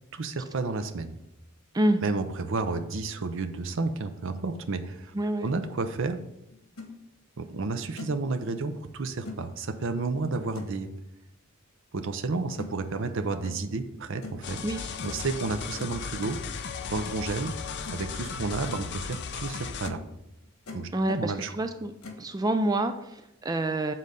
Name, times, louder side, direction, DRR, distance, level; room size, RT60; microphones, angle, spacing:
voice 1, 0.1-1.2 2.0-5.1 5.4-6.3 7.4-10.9 11.9-14.6 15.0-16.4 16.9-17.6 17.9-20.0 20.7-21.6, right 3 dB, 60° right, 8 dB, 0.6 m, -31 dB
voice 2, 5.1-5.5 14.6-14.9 20.9-21.9 22.2-23.9, right 1 dB, 20° right, 8 dB, 0.4 m, -27 dB
sound 1, 6.5-6.9 7.5-7.6 8.0-8.3 9.2-9.4 10.5-10.8 12.6-12.7 13.4-13.6 14.2-14.5 15.0-15.3 15.8-16.0 17.4-17.5 17.8-18.1 18.4-18.8 19.4-19.5 19.8-20.1 20.4-20.8 22.0-22.3, left 3 dB, 85° left, 1.5 m, -42 dB
sound 2, 14.4-19.9, left 6 dB, 55° left, 0.5 m, -36 dB
7.4 x 4.0 x 6.4 m, 0.85 s
head